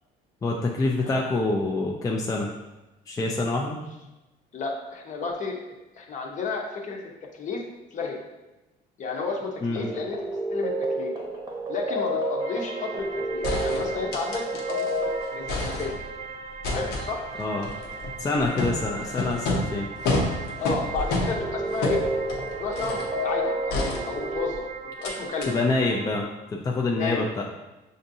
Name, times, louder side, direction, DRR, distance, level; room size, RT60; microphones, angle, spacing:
voice 1, 0.4-2.5 3.1-3.8 9.6-9.9 17.4-17.7 18.2-19.9 25.5-26.3 26.5-27.4, left 2 dB, 20° left, -1 dB, 0.4 m, -26 dB
voice 2, 4.5-5.6 6.0-7.0 7.3-7.6 7.9-8.2 9.0-10.2 10.5-11.1 11.7-15.9 16.7-17.3 18.6-18.7 20.6-22.0 22.6-25.5 26.9-27.4, left 4 dB, 45° left, 1 dB, 0.8 m, -32 dB
sound 1, 9.7-15.8 21.0-24.5, right 1 dB, 20° right, 0.8 m, -30 dB
sound 2, 12.4-26.2, right 5 dB, 55° right, 0.7 m, -39 dB
sound 3, 13.0-13.1 13.4-15.0 15.3-16.2 16.6-23.2 23.7-24.6 25.0-25.1 25.4-25.5, left 2 dB, 80° left, 0.8 m, -30 dB
5.8 x 2.6 x 2.7 m, 1.0 s
cardioid pair, 110°, 17 cm